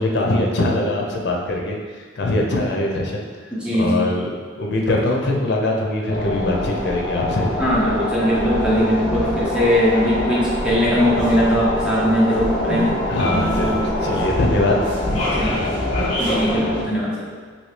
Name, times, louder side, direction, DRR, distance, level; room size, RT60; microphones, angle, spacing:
voice 1, 0.0-1.8 2.2-3.2 3.8-7.5 13.1-14.8, left 2 dB, 60° left, 0 dB, 0.5 m, -22 dB
voice 2, 3.5-4.1 7.6-12.9 15.3-15.7 16.2-17.3, equal, 5° right, -7 dB, 0.7 m, -20 dB
sound 1, 6.1-16.8, left 1 dB, 40° left, 1.0 m, -24 dB
3.1 x 2.8 x 3.2 m, 1.5 s
head